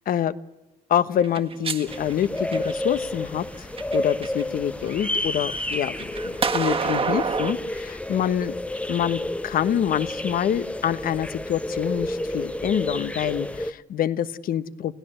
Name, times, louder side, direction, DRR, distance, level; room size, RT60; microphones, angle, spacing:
voice 1, 0.9-3.7 3.9-8.5 8.9-14.9, left 10 dB, 55° left, 15 dB, 1.2 m, -26 dB
sound 1, 1.2-3.0 3.6-4.4 4.8-7.5, right 5 dB, 35° right, 1.8 m, -28 dB
sound 2, 1.9-13.7, left 1 dB, 5° left, 0.9 m, -30 dB
29.5 x 16.0 x 8.0 m, 0.97 s
cardioid pair, 110°, 17 cm